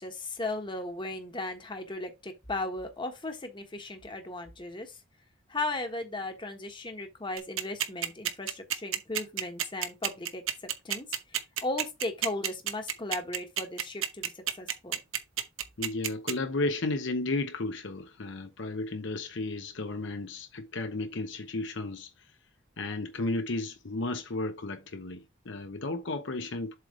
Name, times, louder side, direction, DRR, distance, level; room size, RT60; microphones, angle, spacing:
voice 1, 0.0-5.0 5.5-15.0, left 2 dB, 25° left, 1.3 m, -36 dB
sound 1, 7.4-16.3, right 10 dB, 90° right, 0.9 m, -29 dB
voice 2, 15.8-22.1 22.8-26.7, left 2 dB, 65° left, 0.8 m, -33 dB
7.7 x 3.3 x 4.9 m
head